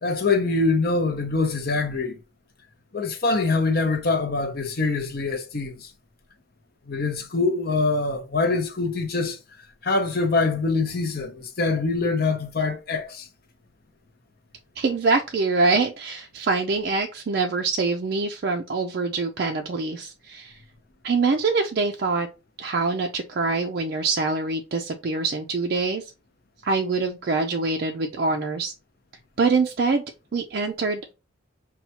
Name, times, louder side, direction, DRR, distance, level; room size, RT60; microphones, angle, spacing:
voice 1, 0.0-2.2 2.9-5.9 6.9-9.4 9.8-13.3, left 3 dB, 50° left, 0.7 m, -24 dB
voice 2, 14.8-20.6 21.0-22.3 22.6-26.1 26.6-28.7 29.4-30.0 30.3-31.1, right 4 dB, 50° right, 0.4 m, -24 dB
5.4 x 2.3 x 2.8 m
head